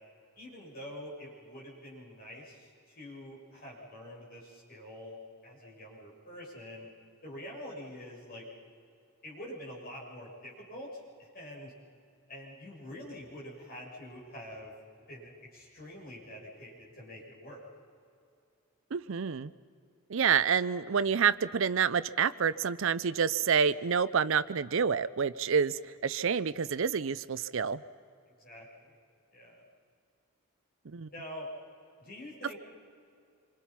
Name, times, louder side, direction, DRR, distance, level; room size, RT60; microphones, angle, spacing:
voice 1, 0.4-6.9 7.2-8.5 9.2-11.7 12.3-14.7 15.1-17.6 28.4-28.9 29.3-29.6 31.1-31.5 32.0-32.6, left 1 dB, 45° left, -4 dB, 7.1 m, -46 dB
voice 2, 18.9-19.5 20.1-27.8 30.9-31.1, right 6 dB, 60° right, 16 dB, 0.5 m, -28 dB
27.0 x 26.0 x 5.9 m, 2.4 s
head